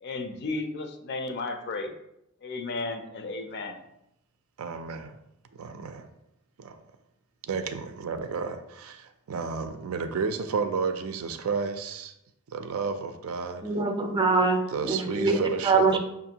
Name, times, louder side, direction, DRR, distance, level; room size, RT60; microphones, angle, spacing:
voice 1, 0.0-1.9 2.4-3.8, left 3 dB, 55° left, 6 dB, 0.4 m, -34 dB
voice 2, 4.6-5.2 5.5-6.1 6.6-6.8 7.5-12.1 12.5-13.6 14.7-16.0, right 5 dB, 85° right, 8 dB, 0.4 m, -32 dB
voice 3, 13.6-15.4 15.6-16.0, right 4 dB, 20° right, 4 dB, 0.5 m, -23 dB
5.4 x 2.5 x 2.8 m, 0.82 s
head